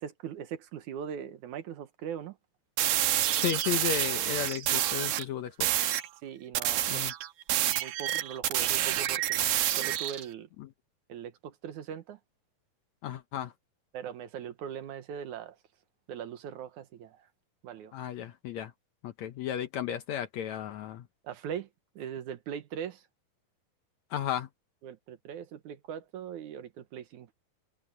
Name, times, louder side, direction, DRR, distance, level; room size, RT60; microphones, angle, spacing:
voice 1, 0.0-2.4 6.2-7.1 7.7-10.5 11.1-12.2 13.9-15.6 16.1-17.3 17.6-18.0 21.2-21.7 22.0-23.0 24.8-27.3, right 8 dB, 65° right, 2.4 m, -40 dB
sound 1, 2.8-5.3 5.6-6.1 6.5-10.2, right 12 dB, 90° right, 2.9 m, -28 dB
voice 2, 3.4-5.7 6.9-7.1 10.6-10.7 13.0-13.5 17.9-18.7 19.0-21.1 24.1-24.5, left 10 dB, 70° left, 1.8 m, -34 dB
omnidirectional pair, 3.9 m